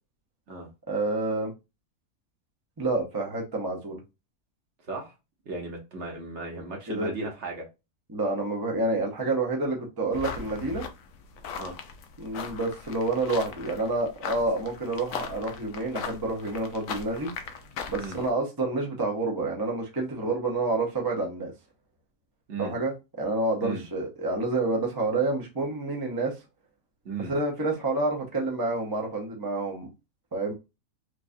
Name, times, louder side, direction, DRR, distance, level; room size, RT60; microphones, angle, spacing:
voice 1, 0.9-1.5 2.8-4.0 6.9-7.1 8.1-10.8 12.2-17.5 17.9-21.5 22.6-26.4 27.3-29.9 30.3-30.5, right 2 dB, 25° right, 0.4 m, -28 dB
voice 2, 5.5-7.6 11.6-11.8 18.0-18.2 22.5-22.7 23.6-23.8 27.0-27.3, right 4 dB, 50° right, 1.1 m, -36 dB
sound 1, 10.1-18.3, left 6 dB, 65° left, 0.9 m, -39 dB
4.6 x 2.4 x 2.6 m
omnidirectional pair, 1.7 m